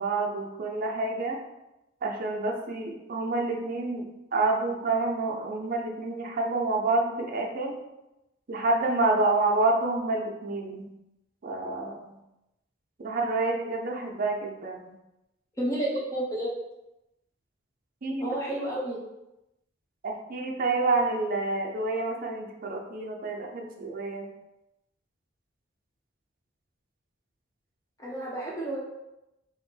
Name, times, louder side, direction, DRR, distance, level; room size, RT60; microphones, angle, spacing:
voice 1, 0.0-1.4 2.0-7.7 8.5-10.9 11.4-12.2 13.0-14.9 18.0-18.3 20.0-24.3, right 3 dB, 45° right, 0 dB, 0.5 m, -28 dB
voice 2, 15.6-16.5 18.2-19.0 28.0-28.8, right 1 dB, 15° left, -5 dB, 1.0 m, -30 dB
3.4 x 2.1 x 4.3 m, 0.93 s
head